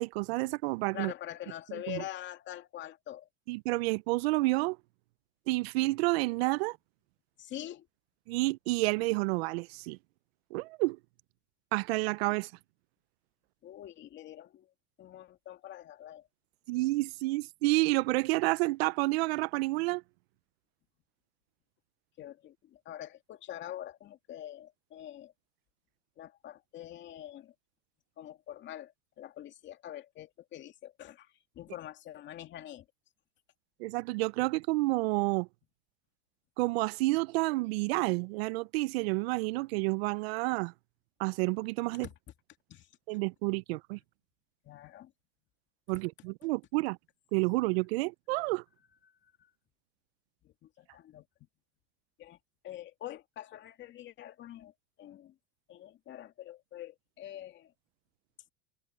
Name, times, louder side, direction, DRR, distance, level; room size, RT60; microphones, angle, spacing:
voice 1, 0.0-1.1 1.9-2.0 3.5-4.8 5.5-6.8 8.3-10.0 10.5-11.0 11.7-12.5 16.7-20.0 33.8-35.5 36.6-40.7 41.2-42.1 43.1-44.0 45.9-47.0 47.3-48.6, right 22 dB, 80° right, 0.6 m, -29 dB
voice 2, 0.9-3.3 7.4-7.9 13.6-14.7 15.0-16.3 22.2-25.3 26.2-27.5 28.2-32.9 42.0-42.1 42.7-42.9 44.6-45.1 49.0-49.5 50.4-51.3 52.2-52.4 52.6-54.7 55.0-55.4 55.7-57.7, left 12 dB, 40° left, 2.4 m, -45 dB
supercardioid pair, 140°, 30 cm